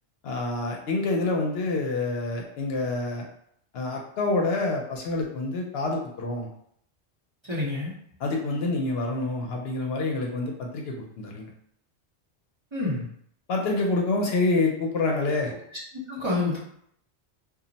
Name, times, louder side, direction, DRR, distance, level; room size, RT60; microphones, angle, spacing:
voice 1, 0.2-3.2 3.7-6.5 8.2-11.5 13.5-15.5, left 2 dB, 70° left, 0 dB, 0.8 m, -27 dB
voice 2, 7.4-7.9 12.7-13.0 15.7-15.8 16.1-16.6, left 2 dB, 30° right, -8 dB, 0.7 m, -28 dB
2.4 x 2.0 x 3.9 m, 0.69 s
omnidirectional pair, 1.1 m